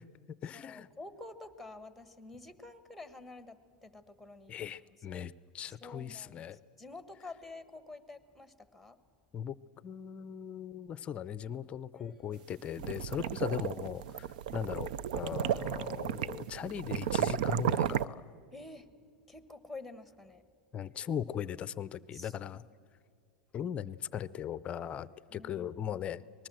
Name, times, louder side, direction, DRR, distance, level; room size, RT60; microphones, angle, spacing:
voice 1, 0.0-0.9 4.5-6.6 9.3-9.6 9.8-14.3 14.5-18.3 20.7-22.6 23.5-26.5, left 9 dB, 25° left, 17 dB, 0.5 m, -39 dB
voice 2, 0.5-4.7 5.1-5.3 5.6-9.0 12.0-12.4 13.1-13.3 18.5-18.9 19.3-20.4 22.1-22.3 25.3-26.0, left 3 dB, ahead, 12 dB, 1.3 m, -49 dB
sound 1, 12.5-18.0, right 10 dB, 75° right, 0.5 m, -33 dB
25.5 x 20.0 x 7.6 m, 2.2 s
supercardioid pair, 145°, 5 cm